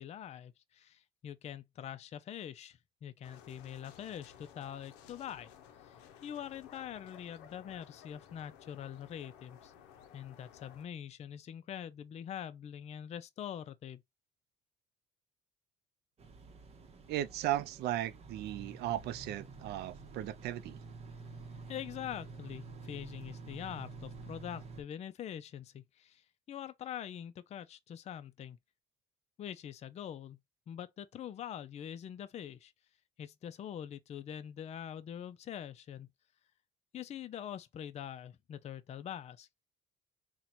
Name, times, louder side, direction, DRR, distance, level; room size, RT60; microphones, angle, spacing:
voice 1, 0.0-5.5 5.8-5.9 6.2-9.7 10.1-14.0 21.7-28.6 29.4-30.4 30.7-32.7 33.2-36.1 36.9-39.5, left 9 dB, 40° left, 0.4 m, -44 dB
sound 1, 3.2-10.9, left 9 dB, 90° left, 0.5 m, -56 dB
sound 2, 16.2-24.8, right 4 dB, 35° right, 0.8 m, -49 dB
voice 2, 17.1-20.8, right 13 dB, 70° right, 0.4 m, -36 dB
2.9 x 2.2 x 4.0 m
cardioid pair, 90°, 17 cm